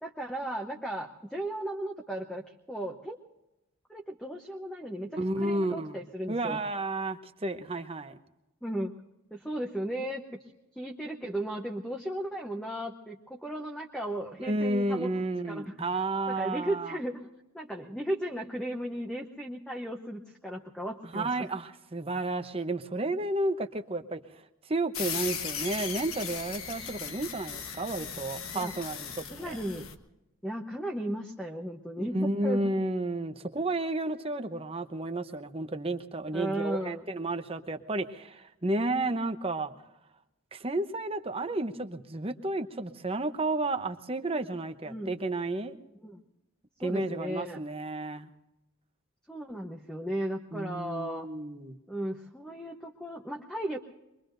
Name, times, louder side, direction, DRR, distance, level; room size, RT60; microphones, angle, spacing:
voice 1, 0.0-3.2 3.9-6.6 8.6-8.9 9.3-10.2 10.7-15.1 15.4-15.7 16.3-17.3 17.5-21.5 28.5-28.7 29.3-29.9 30.4-32.7 36.3-37.0 44.9-45.2 46.0-46.2 46.8-47.6 49.3-51.3 51.9-53.8, right 1 dB, 5° left, 1 dB, 0.9 m, -35 dB
voice 2, 5.2-6.0 6.3-8.2 14.4-17.0 21.1-24.2 24.7-29.1 29.4-29.6 32.1-39.7 40.5-45.8 46.8-48.3 50.5-51.8, right 2 dB, 25° right, 8 dB, 0.8 m, -32 dB
sound 1, 24.9-29.9, left 7 dB, 85° left, 1.3 m, -37 dB
24.5 x 22.5 x 2.6 m, 0.96 s
head